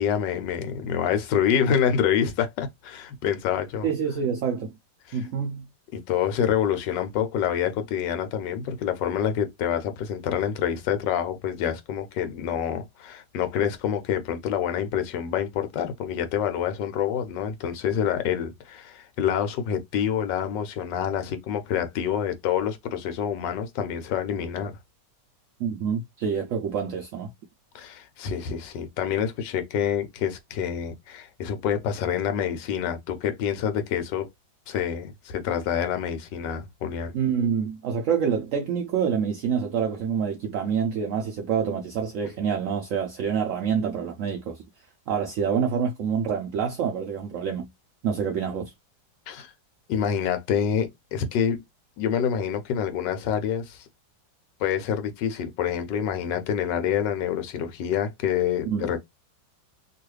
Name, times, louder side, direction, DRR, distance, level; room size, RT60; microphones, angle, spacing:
voice 1, 0.0-3.9 5.1-5.2 5.9-24.8 27.7-34.3 34.7-37.2 49.3-49.5 49.9-51.6 52.0-53.9 54.6-59.0, left 8 dB, 80° left, 1.3 m, -27 dB
voice 2, 3.8-4.7 5.1-5.7 25.6-27.3 37.1-44.6 45.1-47.7 48.0-48.7 58.7-58.9, right 7 dB, 80° right, 0.7 m, -27 dB
3.0 x 2.4 x 3.1 m
omnidirectional pair, 1.9 m